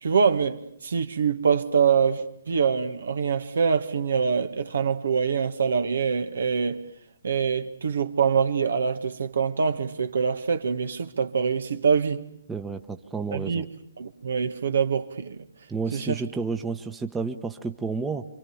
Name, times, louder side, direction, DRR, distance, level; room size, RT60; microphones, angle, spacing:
voice 1, 0.0-6.8 7.2-12.3 13.3-13.6 14.0-15.4 15.9-16.2, right 6 dB, 65° right, 1.6 m, -24 dB
voice 2, 12.5-13.6 15.7-18.2, right 4 dB, 10° right, 1.2 m, -31 dB
27.5 x 25.0 x 7.2 m
figure-of-eight pair, 130°, 0 cm